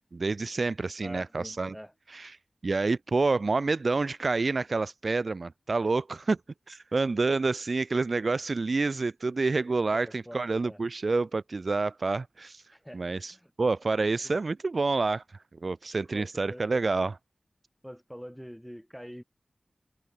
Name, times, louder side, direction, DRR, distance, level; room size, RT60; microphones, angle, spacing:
voice 1, 0.1-1.7 2.1-2.4 2.6-6.4 6.7-12.6 12.9-15.2 15.6-17.1, right 3 dB, 60° right, 0.4 m, -28 dB
voice 2, 1.0-1.9 3.5-3.6 9.9-10.8 12.7-13.0 13.3-13.5 14.2-14.4 16.1-16.9 17.8-19.2, equal, ahead, 4.2 m, -45 dB
wide cardioid pair, 80°, 0 cm